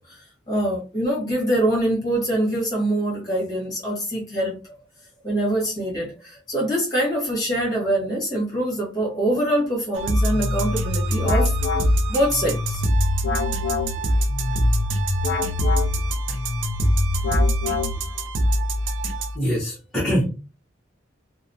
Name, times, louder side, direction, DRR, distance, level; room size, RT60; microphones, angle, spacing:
voice 1, 0.1-4.8 5.2-11.5 12.1-12.8, right 1 dB, 20° left, -4 dB, 1.3 m, -24 dB
sound 1, 9.9-19.4, equal, 85° right, 0.5 m, -24 dB
sound 2, 10.3-18.3, left 3 dB, 70° left, 0.5 m, -27 dB
voice 2, 19.3-20.3, equal, 5° left, -9 dB, 0.9 m, -23 dB
3.0 x 2.0 x 2.6 m, 0.32 s
head